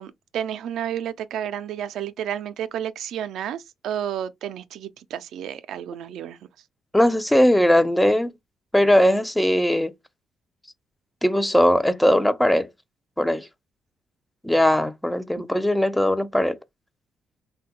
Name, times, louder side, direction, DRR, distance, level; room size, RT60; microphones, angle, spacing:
voice 1, 0.0-6.4 15.4-15.5, right 10 dB, 80° right, 0.3 m, -31 dB
voice 2, 6.9-8.3 8.7-9.9 11.2-12.7 13.2-13.5 14.4-16.5, left 1 dB, 5° left, 0.4 m, -19 dB
3.3 x 2.2 x 2.8 m
cardioid pair, 90°, 0 cm